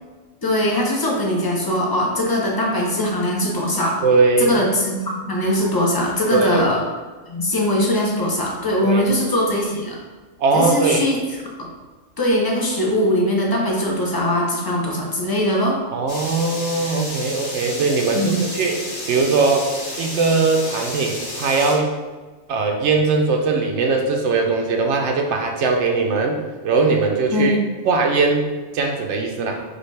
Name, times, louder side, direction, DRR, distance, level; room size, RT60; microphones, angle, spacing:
voice 1, 0.4-4.0 4.4-6.8 7.3-10.0 10.5-11.2 11.6-11.7 12.2-15.8 18.1-18.4 27.3-27.6, left 1 dB, 30° left, -2 dB, 0.4 m, -21 dB
voice 2, 4.0-4.6 6.3-6.7 8.8-9.0 10.4-11.1 15.9-18.8 19.1-19.7 20.0-21.9 22.5-27.6 27.8-29.6, right 4 dB, 70° right, 3 dB, 0.9 m, -20 dB
sound 1, 16.1-21.7, left 1 dB, 45° left, 0.9 m, -31 dB
4.9 x 2.3 x 3.2 m, 1.3 s
omnidirectional pair, 1.3 m